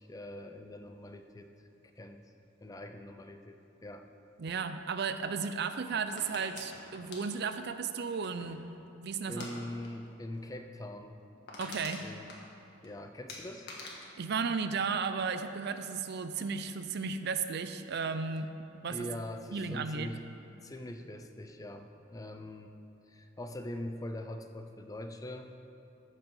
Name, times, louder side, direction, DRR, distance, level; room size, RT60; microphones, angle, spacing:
voice 1, 0.0-1.5 2.0-2.2 2.6-4.1 4.5-4.6 9.3-11.2 12.0-12.3 12.8-13.7 18.9-20.2 20.6-22.8 23.1-25.5, left 1 dB, 15° left, 6 dB, 0.4 m, -42 dB
voice 2, 4.4-8.7 8.9-9.5 11.6-12.0 14.2-18.5 18.8-19.1 19.5-20.1, right 5 dB, 55° right, 10 dB, 0.5 m, -34 dB
sound 1, 6.1-8.7 9.3-9.5 9.8-10.1 10.3-10.4 10.8-10.9 11.2-12.9 13.3-15.3 15.6-16.1, left 3 dB, 55° left, 1.6 m, -47 dB
13.5 x 5.2 x 5.5 m, 2.9 s
head